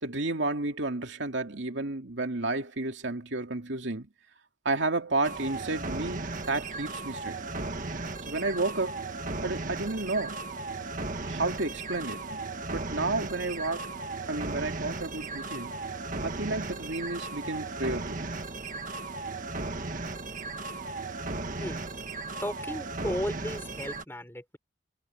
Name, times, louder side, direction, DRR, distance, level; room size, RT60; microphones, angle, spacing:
voice 1, 0.0-4.1 4.6-7.4 8.3-9.1 9.4-10.5 11.2-12.4 12.7-13.9 14.3-15.7 16.2-18.3, right 2 dB, 70° right, 2.5 m, -31 dB
sound 1, 5.2-24.0, right 3 dB, 45° right, 1.7 m, -36 dB
voice 2, 22.4-24.6, equal, 10° left, 4.5 m, -35 dB
head